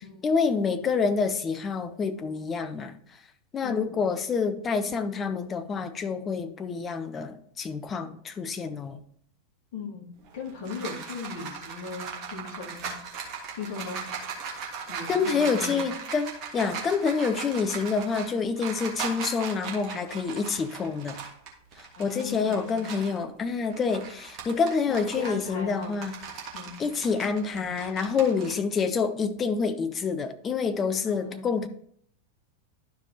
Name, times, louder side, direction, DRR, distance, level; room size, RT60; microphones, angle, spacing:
voice 1, 0.2-2.9 3.5-9.0 15.1-21.2 22.0-26.1 26.8-31.7, left 5 dB, 20° left, 0.6 m, -27 dB
voice 2, 3.6-4.0 9.7-12.9 13.5-14.0 14.9-15.8 21.9-23.0 24.9-26.0 26.5-26.8 31.0-31.4, left 5 dB, 50° left, 2.0 m, -38 dB
sound 1, 10.2-23.2 23.6-28.5, right 6 dB, 35° right, 1.6 m, -38 dB
11.5 x 5.0 x 2.8 m
figure-of-eight pair, 90°, 0 cm